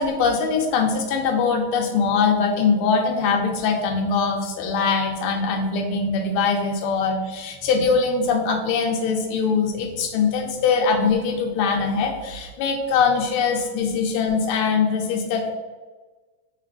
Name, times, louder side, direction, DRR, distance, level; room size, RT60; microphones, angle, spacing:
voice 1, 0.0-15.5, left 5 dB, 85° left, 2 dB, 1.5 m, -22 dB
5.1 x 2.4 x 3.4 m, 1.3 s
omnidirectional pair, 2.3 m